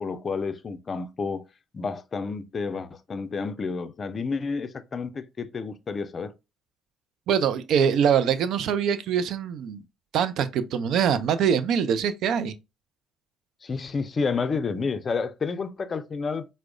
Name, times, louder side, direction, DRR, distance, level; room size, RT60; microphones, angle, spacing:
voice 1, 0.0-1.4 1.7-6.3 13.6-16.5, left 4 dB, 35° left, 0.4 m, -30 dB
voice 2, 7.3-9.8 10.1-12.5, right 7 dB, 60° right, 0.4 m, -23 dB
4.5 x 2.1 x 2.4 m
hypercardioid pair, 55°, 0 cm